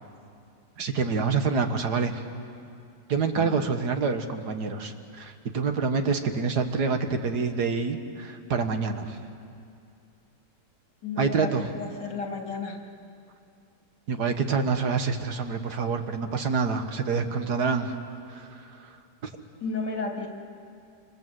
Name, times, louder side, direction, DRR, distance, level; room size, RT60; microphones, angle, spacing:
voice 1, 0.8-2.2 3.1-9.2 11.2-11.7 14.1-17.9 18.3-18.8, right 5 dB, 65° right, 6 dB, 2.0 m, -27 dB
voice 2, 11.0-12.8 19.6-20.3, left 4 dB, 85° left, 1 dB, 3.4 m, -33 dB
26.5 x 26.0 x 7.8 m, 2.4 s
omnidirectional pair, 1.8 m